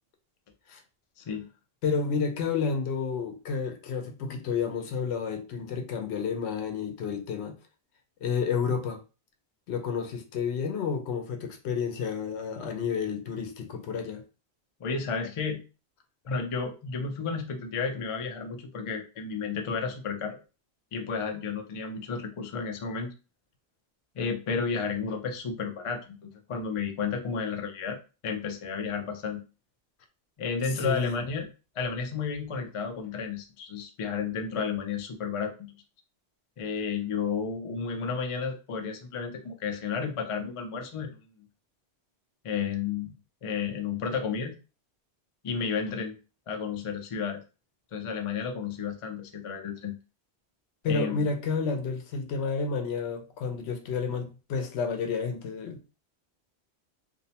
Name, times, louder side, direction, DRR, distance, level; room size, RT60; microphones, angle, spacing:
voice 1, 1.8-7.6 8.2-9.0 9.7-14.2 30.7-31.2 50.8-55.9, left 5 dB, 80° left, 0.8 m, -30 dB
voice 2, 14.8-15.6 16.2-20.4 20.9-23.1 24.2-29.4 30.4-31.5 31.8-35.7 36.6-41.1 42.4-43.1 43.4-44.5 45.4-46.1 46.5-47.4 47.9-49.9 50.9-51.3, left 5 dB, 60° left, 0.3 m, -32 dB
2.6 x 2.0 x 2.8 m
omnidirectional pair, 1.1 m